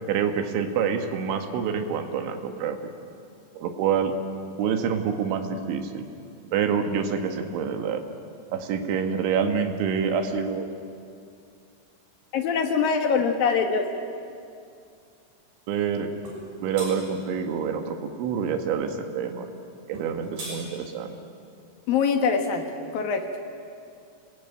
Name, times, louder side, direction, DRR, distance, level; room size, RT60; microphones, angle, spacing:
voice 1, 0.1-2.8 3.6-4.1 4.6-6.1 6.5-8.0 8.5-10.7 15.7-16.1 16.6-19.5 19.9-21.2, right 7 dB, 85° right, 6 dB, 4.0 m, -27 dB
voice 2, 12.3-13.9 21.9-22.6 22.9-23.2, left 6 dB, 65° left, 5 dB, 2.7 m, -23 dB
sound 1, 16.2-16.4 16.7-16.9 19.9-20.6, right 1 dB, 55° right, 8.0 m, -37 dB
28.0 x 20.0 x 9.0 m, 2.5 s
omnidirectional pair, 5.3 m